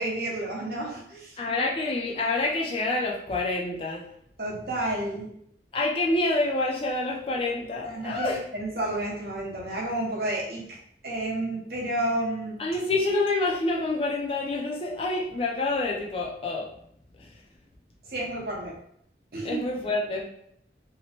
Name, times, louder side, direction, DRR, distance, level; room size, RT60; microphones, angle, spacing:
voice 1, 0.0-1.4 4.4-5.3 7.8-10.8 11.0-12.6 18.0-18.8 19.3-19.6, right 1 dB, 55° right, -3 dB, 0.7 m, -31 dB
voice 2, 1.4-4.1 5.7-8.4 12.6-16.7 17.2-17.3 19.4-20.2, left 2 dB, 30° left, -1 dB, 0.4 m, -27 dB
2.8 x 2.0 x 2.8 m, 0.69 s
head